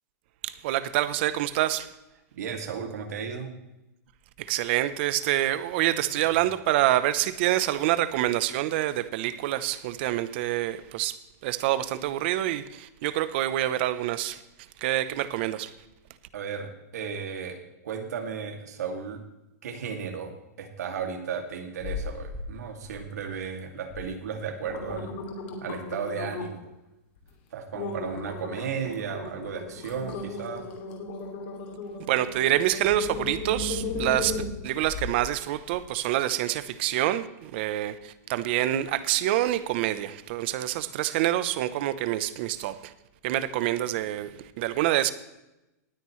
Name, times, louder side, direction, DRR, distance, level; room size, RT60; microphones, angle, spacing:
voice 1, 0.4-1.9 4.4-11.2 11.4-14.4 14.8-15.7 32.1-42.9 43.2-44.3 44.6-45.1, right 14 dB, 40° right, 0.8 m, -26 dB
voice 2, 2.3-3.5 16.3-19.2 19.6-25.2 25.6-26.6 27.5-30.7 44.3-44.4, right 6 dB, 75° right, 2.4 m, -34 dB
sound 1, 21.8-22.5 22.8-23.3 23.9-24.0 24.4-26.7 27.2-27.3 27.7-35.2 35.7-35.8, left 3 dB, 40° left, 2.6 m, -36 dB
19.0 x 9.3 x 3.2 m
supercardioid pair, 165°, 9 cm